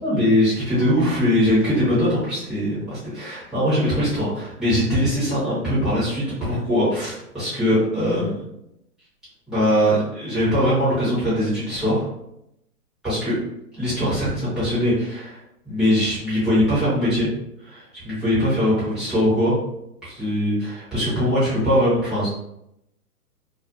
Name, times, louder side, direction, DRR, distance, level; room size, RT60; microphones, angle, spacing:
voice 1, 0.0-8.4 9.5-12.1 13.0-13.4 13.8-15.4 15.6-17.3 17.6-19.6 20.0-22.3, equal, ahead, -14 dB, 0.6 m, -21 dB
2.3 x 2.2 x 2.4 m, 0.81 s
hypercardioid pair, 145°, 47 cm